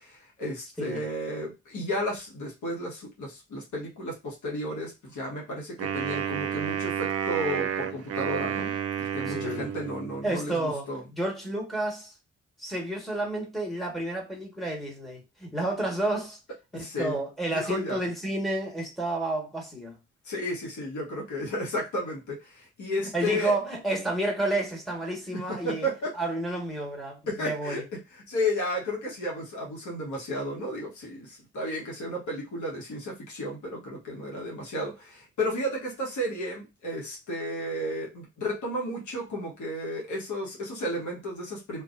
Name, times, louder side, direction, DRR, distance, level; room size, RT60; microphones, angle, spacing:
voice 1, 0.0-11.0 16.7-17.2 17.5-18.0 20.2-23.6 25.3-26.1 27.3-28.0 28.3-41.8, equal, 70° left, 1.2 m, -33 dB
Wind instrument woodwind instrument, 5.8-10.2, right 8 dB, 50° right, 0.5 m, -31 dB
voice 2, 9.3-9.7 10.2-12.1 12.6-16.4 16.7-20.0 23.1-25.9 26.1-27.8, right 1 dB, ahead, 1.4 m, -30 dB
2.5 x 2.5 x 2.5 m
hypercardioid pair, 40°, 30 cm